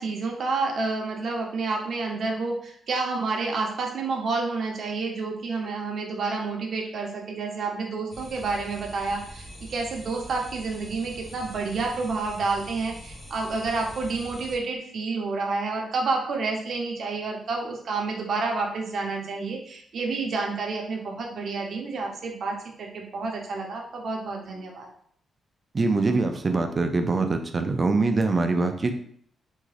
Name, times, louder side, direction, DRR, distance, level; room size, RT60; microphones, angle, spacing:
voice 1, 0.0-24.9, right 3 dB, 55° right, 1 dB, 0.7 m, -29 dB
sound 1, 8.1-14.6, equal, 70° left, 1.2 m, -43 dB
voice 2, 25.7-28.9, right 3 dB, 30° right, 6 dB, 0.4 m, -23 dB
3.6 x 2.1 x 3.2 m, 0.62 s
wide cardioid pair, 140°, 0 cm